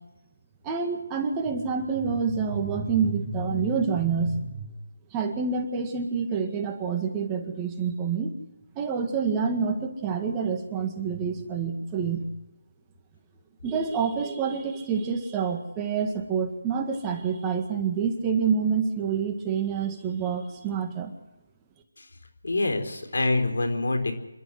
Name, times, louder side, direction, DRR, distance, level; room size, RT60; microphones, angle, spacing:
voice 1, 0.6-4.7 5.1-8.3 8.8-12.2 13.6-21.1, right 6 dB, 15° right, 3 dB, 1.9 m, -27 dB
voice 2, 22.4-24.1, left 2 dB, 70° left, 6 dB, 4.4 m, -25 dB
27.5 x 12.5 x 7.8 m, 0.98 s
figure-of-eight pair, 160°, 0 cm